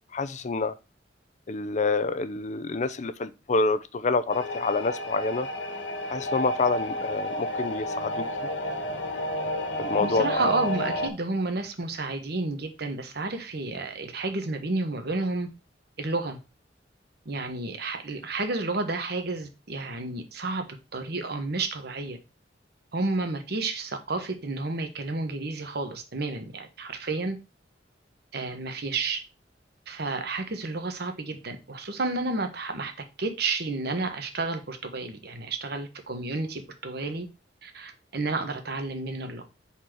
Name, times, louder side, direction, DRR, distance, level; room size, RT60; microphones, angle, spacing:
voice 1, 0.1-0.7 1.5-5.5 6.1-8.3 9.8-10.4, left 3 dB, 40° left, 0.5 m, -27 dB
sound 1, 4.3-11.1, equal, 80° left, 1.5 m, -31 dB
voice 2, 10.0-15.5 16.0-16.4 17.2-20.6 20.9-22.2 22.9-27.4 28.3-29.2 29.9-32.9 33.2-37.3 37.6-39.4, right 3 dB, 60° right, 1.2 m, -31 dB
5.0 x 4.3 x 6.0 m
head